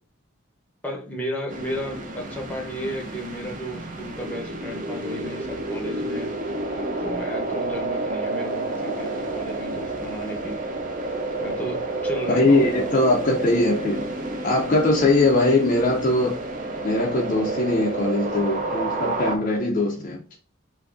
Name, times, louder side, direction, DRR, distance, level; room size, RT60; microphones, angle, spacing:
voice 1, 0.8-6.3 7.0-10.6 11.4-13.0, equal, 10° left, 0.7 m, -33 dB
sound 1, 1.5-19.4, right 2 dB, 40° right, 0.5 m, -30 dB
voice 2, 12.3-14.1 14.4-16.4 16.8-20.2, left 2 dB, 40° left, 0.4 m, -21 dB
3.7 x 2.6 x 2.4 m
head